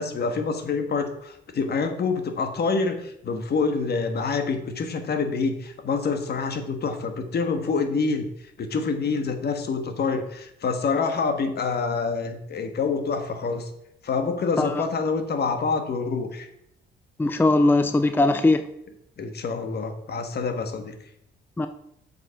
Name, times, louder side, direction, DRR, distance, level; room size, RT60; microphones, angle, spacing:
voice 1, 0.0-8.3 8.6-13.7 14.0-16.5 19.2-20.9, left 4 dB, 55° left, 7 dB, 1.4 m, -26 dB
voice 2, 17.2-18.6 21.6-21.7, left 2 dB, 10° left, 9 dB, 0.5 m, -20 dB
7.6 x 5.4 x 5.7 m, 0.78 s
cardioid pair, 90°, 20 cm